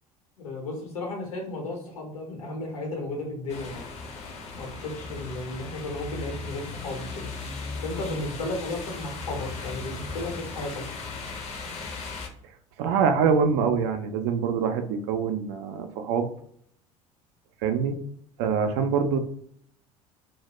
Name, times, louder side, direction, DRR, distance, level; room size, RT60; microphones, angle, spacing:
voice 1, 0.4-3.8 4.5-7.3 7.8-10.8, left 2 dB, 70° left, 1 dB, 0.9 m, -34 dB
sound 1, 3.5-12.3, left 4 dB, 35° left, 0.6 m, -37 dB
voice 2, 12.8-16.3 17.6-18.0 18.4-19.2, right 6 dB, 55° right, 7 dB, 0.4 m, -24 dB
2.1 x 2.1 x 3.0 m, 0.63 s
figure-of-eight pair, 65°, 18 cm